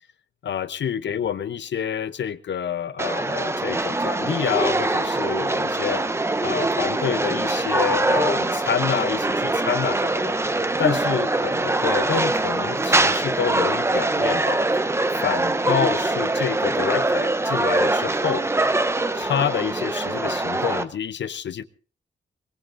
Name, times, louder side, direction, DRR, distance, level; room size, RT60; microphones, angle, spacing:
voice 1, 0.4-6.0 6.4-10.3 10.8-14.6 15.1-18.5 19.1-21.6, left 8 dB, 85° left, 0.7 m, -28 dB
sound 1, 3.0-20.8, right 2 dB, 15° right, 0.6 m, -23 dB
23.0 x 20.5 x 2.6 m
wide cardioid pair, 170°, 18 cm